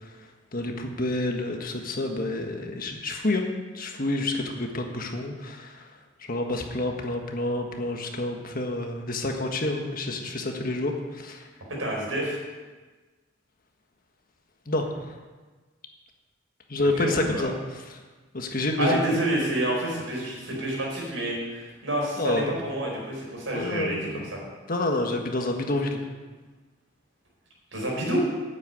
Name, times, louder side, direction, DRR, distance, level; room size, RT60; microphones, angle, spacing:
voice 1, 0.5-3.4 3.7-5.9 6.3-11.5 14.7-15.1 16.7-17.5 17.9-18.0 18.3-19.0 22.2-22.5 23.5-24.3 24.7-26.0, left 2 dB, 45° left, 3 dB, 1.5 m, -28 dB
voice 2, 11.8-12.4 17.0-17.5 18.8-24.4 27.7-28.2, right 1 dB, 80° right, -3 dB, 4.9 m, -28 dB
9.3 x 8.0 x 9.2 m, 1.3 s
head